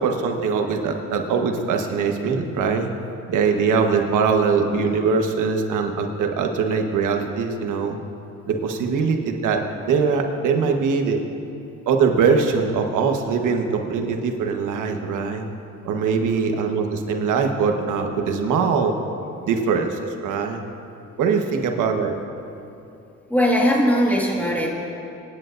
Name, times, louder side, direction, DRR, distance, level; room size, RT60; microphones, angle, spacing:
voice 1, 0.0-2.9 3.3-8.0 8.5-11.2 11.9-15.5 15.8-19.0 19.4-20.6 21.2-22.1, right 5 dB, 85° right, 3 dB, 1.3 m, -22 dB
voice 2, 23.3-24.7, equal, 5° left, -3 dB, 1.9 m, -19 dB
25.5 x 10.5 x 2.6 m, 2.7 s
cardioid pair, 90°, 30 cm